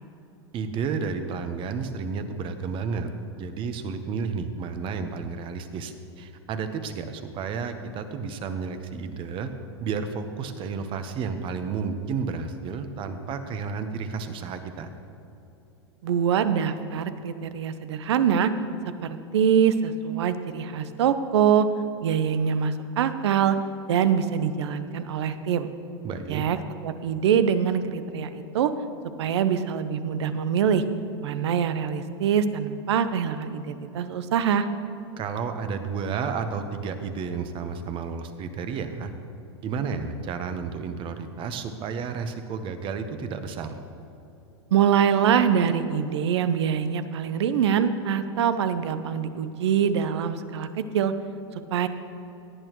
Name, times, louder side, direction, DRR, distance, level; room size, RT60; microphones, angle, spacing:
voice 1, 0.5-3.1 3.4-9.5 9.8-14.9 26.0-26.4 35.2-39.1 39.6-43.8, right 5 dB, 35° right, 8 dB, 1.0 m, -31 dB
voice 2, 16.0-18.5 19.3-21.7 22.0-23.6 23.9-25.7 26.3-26.6 26.8-28.7 29.2-30.8 31.2-34.7 44.7-51.1 51.7-51.9, right 8 dB, 75° right, 11 dB, 0.7 m, -24 dB
17.5 x 8.8 x 3.1 m, 2.9 s
hypercardioid pair, 110°, 14 cm